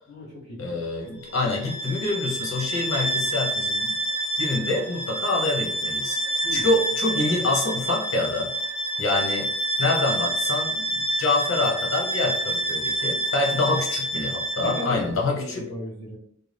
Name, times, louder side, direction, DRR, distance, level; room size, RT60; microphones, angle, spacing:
voice 1, 0.1-0.8 6.4-6.7 13.6-13.8 14.6-16.2, left 1 dB, 45° left, -9 dB, 1.0 m, -36 dB
voice 2, 0.6-3.9 4.4-8.5 9.0-15.7, left 2 dB, 75° left, -1 dB, 0.8 m, -26 dB
Bowed string instrument, 1.2-15.1, right 1 dB, 30° left, 0.6 m, -28 dB
2.6 x 2.2 x 3.3 m, 0.67 s
head